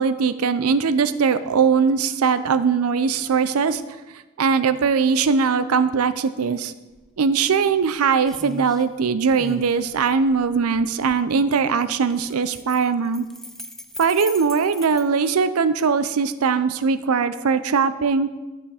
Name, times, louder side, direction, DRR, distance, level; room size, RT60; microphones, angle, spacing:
voice 1, 0.0-3.8 4.4-6.7 7.2-13.3 14.0-18.3, right 5 dB, 85° right, 13 dB, 0.5 m, -20 dB
sound 1, 6.9-7.1 7.5-7.9 8.3-8.8 9.3-11.2 12.0-15.0, left 1 dB, ahead, 0.3 m, -39 dB
11.0 x 5.6 x 4.9 m, 1.1 s
head